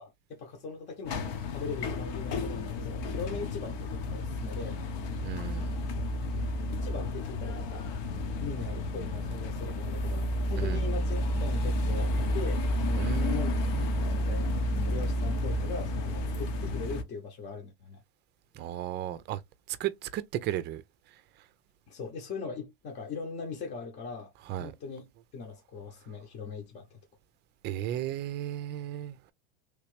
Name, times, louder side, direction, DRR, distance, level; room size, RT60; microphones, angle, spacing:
voice 1, 0.0-4.8 6.7-7.9 8.4-13.6 14.2-18.0 21.9-24.3 24.6-27.0, left 5 dB, 30° left, 1.1 m, -40 dB
sound 1, 1.1-17.0, left 1 dB, 60° left, 1.2 m, -31 dB
voice 2, 5.2-5.8 10.6-10.8 12.9-13.5 13.7-13.9 18.5-19.4 19.7-20.8 24.5-24.7 27.6-29.3, right 12 dB, 30° right, 0.5 m, -35 dB
3.3 x 3.0 x 3.3 m
supercardioid pair, 125°, 33 cm